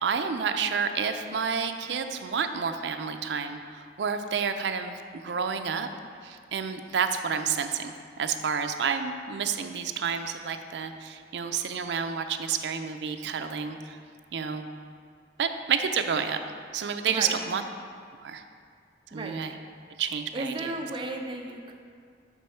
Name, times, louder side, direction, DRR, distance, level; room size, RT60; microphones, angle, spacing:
voice 1, 0.0-5.9 6.2-14.0 14.3-14.7 15.4-16.4 16.7-17.6 18.2-18.4 19.1-19.6 20.0-20.7, right 6 dB, 75° right, 7 dB, 0.4 m, -30 dB
voice 2, 17.1-17.4 19.1-19.4 20.3-21.7, right 2 dB, 30° right, 2 dB, 0.6 m, -34 dB
6.2 x 5.3 x 4.4 m, 2.2 s
head